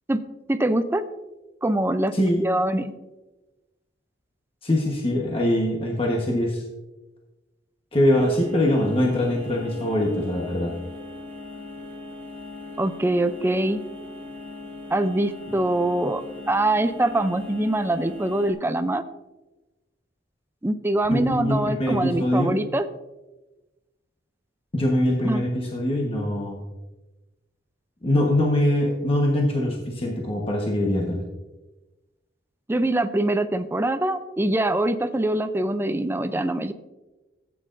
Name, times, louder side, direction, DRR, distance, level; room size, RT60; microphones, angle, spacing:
voice 1, 0.5-1.0 1.6-2.9 12.8-13.8 14.9-16.2 16.5-19.0 20.6-22.9 25.2-25.4 32.7-36.7, right 1 dB, 10° right, 10 dB, 0.4 m, -23 dB
voice 2, 4.6-6.6 7.9-10.7 21.1-22.6 24.7-26.6 28.0-31.2, left 1 dB, 30° left, -1 dB, 1.2 m, -23 dB
sound 1, 8.1-18.5, left 3 dB, 10° left, 2.0 m, -39 dB
14.0 x 8.6 x 2.6 m, 1.1 s
head